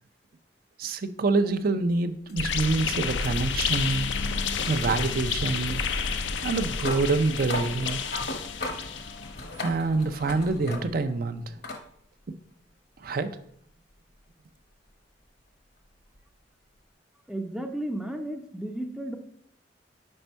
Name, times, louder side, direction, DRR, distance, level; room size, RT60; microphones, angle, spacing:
voice 1, 0.8-4.1 4.6-5.8 6.4-8.3 9.6-11.6 13.0-13.3, right 3 dB, 55° right, 9 dB, 0.5 m, -26 dB
sound 1, 2.3-11.2 11.6-11.8 13.2-13.3 16.1-16.2, left 1 dB, 60° left, 0.9 m, -38 dB
sound 2, 2.4-9.4, left 6 dB, 85° left, 0.5 m, -30 dB
voice 2, 17.3-19.2, right 1 dB, 5° right, 4 dB, 0.5 m, -33 dB
5.4 x 5.2 x 4.5 m, 0.68 s
head